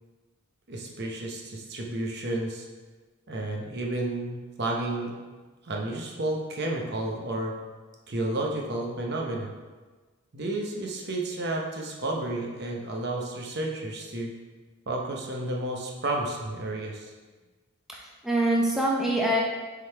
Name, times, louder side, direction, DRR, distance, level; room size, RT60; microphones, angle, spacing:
voice 1, 0.7-2.7 3.3-5.1 5.6-7.5 8.1-9.5 10.3-14.3 14.9-17.1, right 2 dB, 50° right, 0 dB, 0.8 m, -31 dB
voice 2, 17.9-19.4, right 1 dB, ahead, -4 dB, 0.7 m, -25 dB
6.2 x 3.9 x 4.5 m, 1.3 s
head